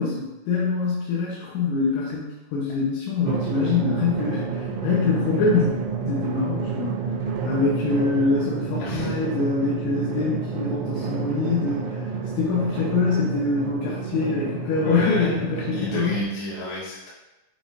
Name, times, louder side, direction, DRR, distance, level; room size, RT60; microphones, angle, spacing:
voice 1, 0.0-5.7 6.1-7.0 7.5-12.1 12.4-16.2, left 4 dB, 90° left, -5 dB, 3.5 m, -24 dB
Drum, 3.3-16.2, right 5 dB, 80° right, 3.0 m, -29 dB
voice 2, 8.8-9.1 14.8-15.3 15.7-17.1, left 2 dB, 75° left, -8 dB, 4.2 m, -30 dB
8.5 x 4.8 x 2.6 m, 1.0 s
omnidirectional pair, 5.3 m